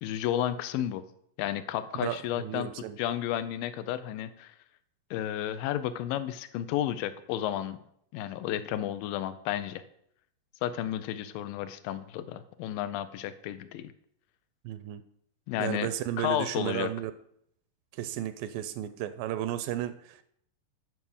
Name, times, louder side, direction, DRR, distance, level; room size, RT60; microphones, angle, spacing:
voice 1, 0.0-1.0 1.4-2.7 3.0-4.6 5.1-7.8 8.1-9.8 10.6-13.9 15.5-15.9 16.2-16.9, left 11 dB, 80° left, 2.3 m, -32 dB
voice 2, 1.9-3.0 14.7-15.0 15.6-17.1 17.9-20.2, right 12 dB, 80° right, 2.1 m, -34 dB
9.5 x 4.7 x 7.0 m
omnidirectional pair, 4.1 m